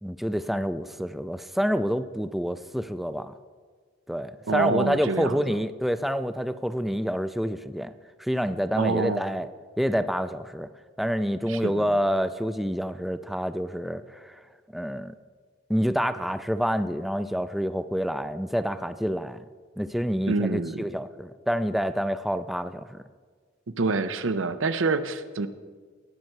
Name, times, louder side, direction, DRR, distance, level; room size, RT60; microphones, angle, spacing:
voice 1, 0.0-3.3 4.1-7.9 8.2-9.5 9.8-10.7 11.0-14.4 14.7-15.2 15.7-19.4 19.8-23.0, equal, ahead, 11 dB, 0.3 m, -27 dB
voice 2, 4.5-5.6 8.8-9.2 11.5-12.0 20.3-20.8 23.8-25.5, right 3 dB, 85° right, 11 dB, 0.7 m, -27 dB
19.0 x 6.6 x 4.6 m, 1.5 s
head